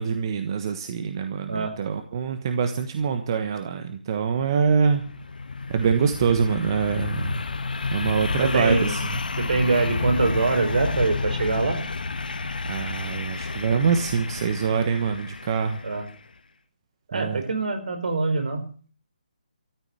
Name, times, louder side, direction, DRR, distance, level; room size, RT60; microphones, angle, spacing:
voice 1, 0.0-5.0 5.7-7.3 7.9-9.0 12.7-15.8 17.1-17.4, right 6 dB, 30° right, 7 dB, 1.3 m, -24 dB
sound 1, 4.5-16.2, left 4 dB, 75° left, 1.9 m, -30 dB
voice 2, 8.4-9.0 9.4-11.8 15.8-16.1 17.1-18.6, right 3 dB, 65° right, 6 dB, 4.6 m, -24 dB
14.0 x 10.5 x 9.0 m, 0.43 s
hypercardioid pair, 170°, 5 cm